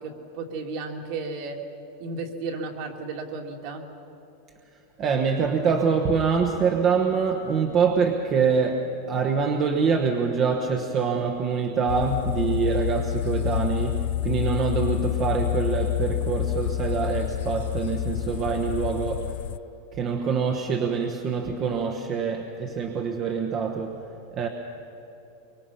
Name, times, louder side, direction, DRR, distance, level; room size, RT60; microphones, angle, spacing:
voice 1, 0.0-1.6 2.0-3.9, right 3 dB, 50° right, 2 dB, 2.6 m, -34 dB
voice 2, 5.0-19.4 19.9-24.5, right 5 dB, 30° right, 3 dB, 1.1 m, -25 dB
sound 1, 11.9-19.6, left 12 dB, 70° left, 0.4 m, -28 dB
24.0 x 23.5 x 5.7 m, 2.9 s
supercardioid pair, 155°, 0 cm